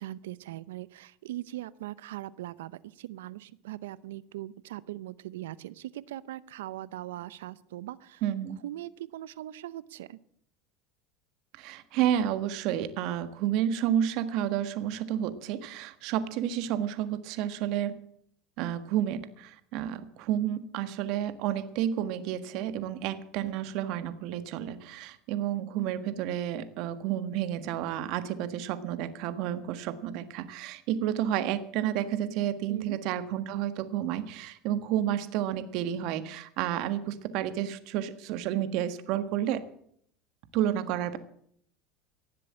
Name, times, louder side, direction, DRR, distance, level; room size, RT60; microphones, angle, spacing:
voice 1, 0.0-8.2 8.6-10.2 32.7-33.0, right 14 dB, 85° right, 19 dB, 0.7 m, -40 dB
voice 2, 8.2-8.6 11.6-17.9 18.6-39.6 40.5-41.2, right 10 dB, 65° right, 11 dB, 1.5 m, -30 dB
17.5 x 7.7 x 8.8 m, 0.66 s
supercardioid pair, 105°, 0 cm